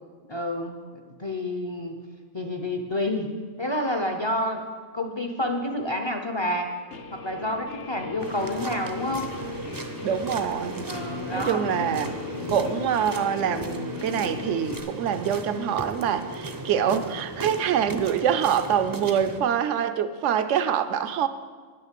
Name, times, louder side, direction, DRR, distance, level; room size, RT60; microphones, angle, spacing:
voice 1, 0.3-0.8 1.2-2.0 2.3-4.6 4.9-6.7 7.1-9.3 10.9-12.0 12.4-12.6 16.8-17.2, left 1 dB, 30° left, 4 dB, 0.5 m, -29 dB
Guitar, 6.9-14.8, left 6 dB, 70° left, 1.0 m, -38 dB
sound 1, 8.2-19.4, right 2 dB, 25° right, 0.5 m, -36 dB
voice 2, 10.0-10.9 11.3-12.2 12.5-21.3, right 8 dB, 70° right, 11 dB, 0.9 m, -25 dB
9.7 x 6.6 x 7.4 m, 1.5 s
omnidirectional pair, 1.4 m